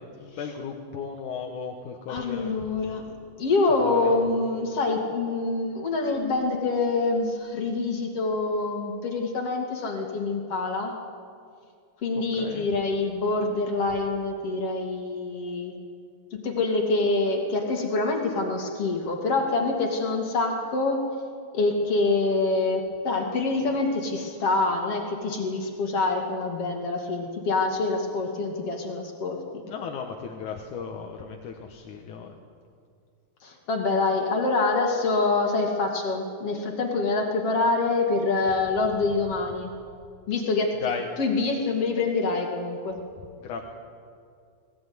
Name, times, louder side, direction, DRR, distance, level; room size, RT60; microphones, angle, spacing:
voice 1, 0.0-2.6 3.8-4.2 12.2-12.7 29.7-32.4 40.8-41.1 43.4-43.6, left 6 dB, 80° left, 2 dB, 2.7 m, -35 dB
voice 2, 2.1-3.0 3.4-10.9 12.0-15.7 16.4-21.0 21.5-29.4 33.4-39.7 40.3-40.8 41.2-43.0, left 3 dB, 50° left, 2 dB, 3.2 m, -26 dB
21.0 x 16.5 x 9.6 m, 2.2 s
omnidirectional pair, 3.5 m